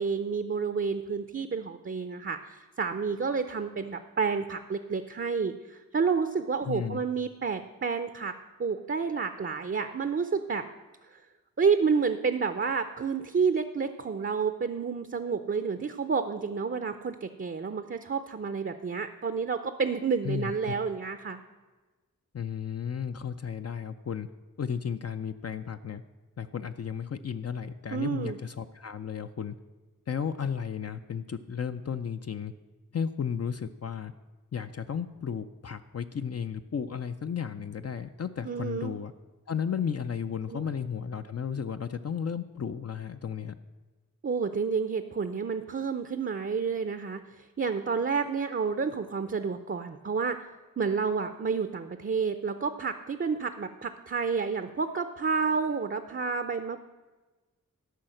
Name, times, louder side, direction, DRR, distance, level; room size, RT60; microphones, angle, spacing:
voice 1, 0.0-8.3 8.6-10.6 11.6-21.4 27.9-28.4 38.4-38.9 40.5-40.7 44.2-50.4 50.8-56.8, right 5 dB, 35° right, 9 dB, 0.5 m, -30 dB
voice 2, 6.7-7.0 20.2-20.8 22.3-24.3 24.6-26.0 26.4-29.5 30.1-32.5 32.9-34.1 34.5-39.1 39.5-43.5, left 7 dB, 50° left, 9 dB, 0.4 m, -34 dB
13.0 x 5.6 x 7.6 m, 1.3 s
wide cardioid pair, 90°, 33 cm